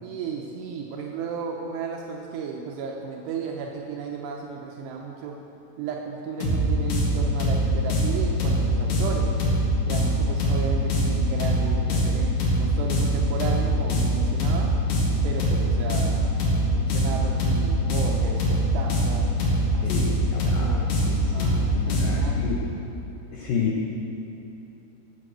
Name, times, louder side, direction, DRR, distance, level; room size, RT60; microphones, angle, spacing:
voice 1, 0.0-5.4 5.8-9.4 9.9-14.7 15.2-19.3 19.7-20.1 20.5-20.9 21.3-22.6, right 5 dB, 85° right, 0 dB, 2.7 m, -34 dB
sound 1, 6.4-22.3, equal, 50° left, 2.7 m, -23 dB
voice 2, 19.8-22.7 23.3-23.9, left 6 dB, 85° left, -2 dB, 1.9 m, -31 dB
14.0 x 7.8 x 6.3 m, 2.9 s
omnidirectional pair, 5.2 m